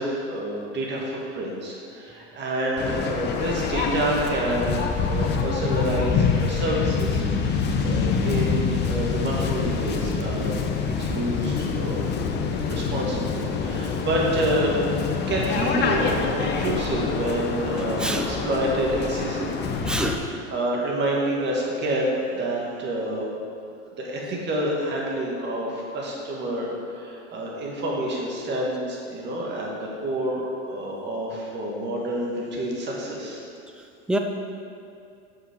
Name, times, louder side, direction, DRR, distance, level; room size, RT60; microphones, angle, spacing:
voice 1, 0.0-10.6 11.0-12.1 12.7-14.8 15.3-19.7 20.1-23.3 24.0-33.4, right 1 dB, 30° right, -3 dB, 1.9 m, -28 dB
Waves surf, 2.8-20.2, left 5 dB, 30° left, 0.8 m, -26 dB
voice 2, 17.7-18.3 19.8-20.2 34.1-34.2, right 1 dB, ahead, 3 dB, 0.4 m, -26 dB
7.0 x 5.6 x 5.2 m, 2.4 s
hypercardioid pair, 110°, 35 cm